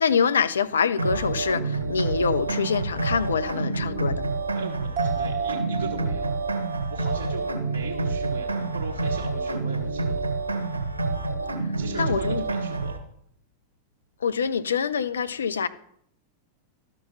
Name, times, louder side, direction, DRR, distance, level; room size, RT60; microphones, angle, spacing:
voice 1, 0.0-4.3 12.0-12.4 14.2-15.7, left 6 dB, 70° left, 0.5 m, -25 dB
sound 1, 1.0-13.0, right 3 dB, 80° right, 1.6 m, -28 dB
voice 2, 4.5-6.3 6.9-10.3 11.8-13.0, right 4 dB, 60° right, 1.3 m, -38 dB
sound 2, 5.0-8.7 9.0-9.1, right 7 dB, 40° right, 1.4 m, -35 dB
12.5 x 6.0 x 5.6 m
figure-of-eight pair, 90°, 0 cm